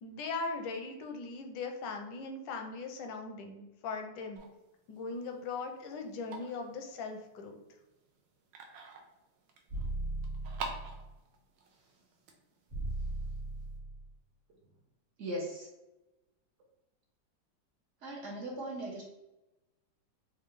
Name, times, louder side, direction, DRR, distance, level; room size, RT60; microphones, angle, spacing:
voice 1, 0.0-4.5 4.9-7.6, left 4 dB, 85° left, 4 dB, 1.3 m, -39 dB
sound 1, 4.4-13.8, right 4 dB, 85° right, 1.3 m, -49 dB
sound 2, 9.7-11.1 12.7-14.1, right 2 dB, 45° right, 1.5 m, -38 dB
voice 2, 15.2-15.7 18.0-19.0, right 1 dB, 60° right, -2 dB, 0.7 m, -38 dB
4.3 x 2.4 x 3.0 m, 0.99 s
omnidirectional pair, 1.9 m